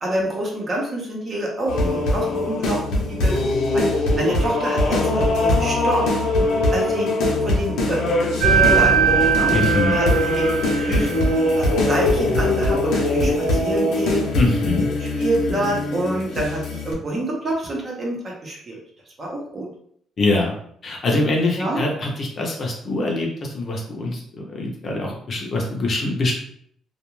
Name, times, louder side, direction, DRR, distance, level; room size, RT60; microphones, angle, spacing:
voice 1, 0.0-3.9 4.2-6.0 6.7-7.1 7.4-9.5 9.9-10.4 10.8-11.2 11.6-14.4 15.0-18.2 18.4-18.8 19.2-19.7 21.6-21.8, right 1 dB, 30° right, -1 dB, 0.7 m, -27 dB
sound 1, 1.7-16.9, left 2 dB, 80° left, 0.6 m, -21 dB
sound 2, 8.4-11.3, right 7 dB, 80° right, 0.7 m, -20 dB
voice 2, 9.5-9.9 14.3-14.9 20.2-20.6 20.8-26.3, left 2 dB, 35° left, 0 dB, 0.6 m, -23 dB
2.3 x 2.2 x 3.0 m, 0.65 s
cardioid pair, 150°, 0 cm